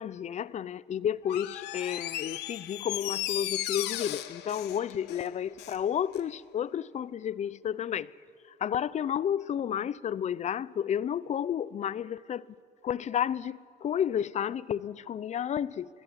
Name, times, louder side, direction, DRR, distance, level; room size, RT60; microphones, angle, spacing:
voice 1, 0.0-8.1 8.6-12.4 12.8-15.9, left 9 dB, 45° left, 0.6 m, -31 dB
Door, 1.2-5.8 6.1-6.2, left 14 dB, 80° left, 1.2 m, -36 dB
23.5 x 20.0 x 9.9 m
cardioid pair, 110°, 17 cm